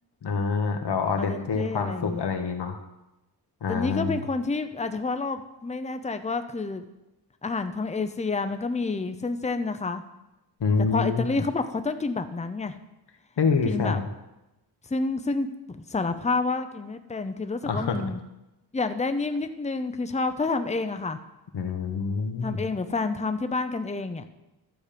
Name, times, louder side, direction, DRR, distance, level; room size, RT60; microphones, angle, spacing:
voice 1, 0.2-2.8 3.6-4.2 10.6-11.4 13.4-14.1 17.7-18.0 21.5-22.6, left 5 dB, 80° left, 5 dB, 1.4 m, -26 dB
voice 2, 1.2-2.3 3.7-6.8 7.4-10.0 10.9-12.7 13.7-14.0 14.9-18.2 18.7-21.2 22.4-24.3, left 3 dB, 15° left, 9 dB, 0.7 m, -29 dB
12.5 x 7.2 x 5.1 m, 0.96 s
wide cardioid pair, 95°, 40 cm